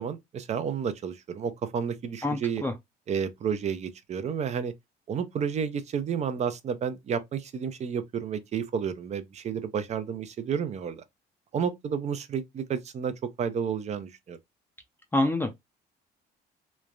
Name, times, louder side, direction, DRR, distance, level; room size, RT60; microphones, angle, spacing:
voice 1, 0.0-2.6 3.1-4.7 5.1-11.0 11.5-14.4, right 7 dB, 40° right, 0.5 m, -31 dB
voice 2, 2.2-2.7 15.1-15.5, left 2 dB, 10° left, 0.5 m, -26 dB
3.1 x 2.1 x 2.4 m
cardioid pair, 110°, 17 cm